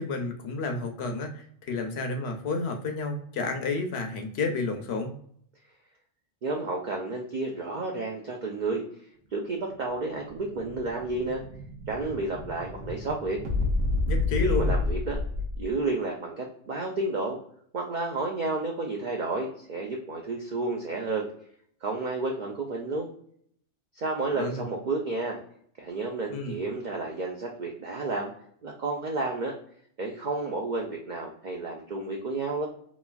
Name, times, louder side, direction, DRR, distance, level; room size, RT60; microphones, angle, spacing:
voice 1, 0.0-5.1 14.1-14.7 24.4-24.6 26.3-26.6, left 3 dB, 65° left, 4 dB, 0.7 m, -31 dB
voice 2, 6.4-8.9 9.3-11.4 11.9-13.4 14.4-15.2 15.6-17.4 17.7-21.3 21.8-23.1 23.9-25.4 25.8-28.3 28.6-29.5 30.0-32.7, right 3 dB, 70° right, 0 dB, 0.4 m, -31 dB
Explosion, 9.7-15.8, left 2 dB, 85° right, 1.1 m, -30 dB
3.0 x 2.5 x 2.3 m, 0.64 s
omnidirectional pair, 1.3 m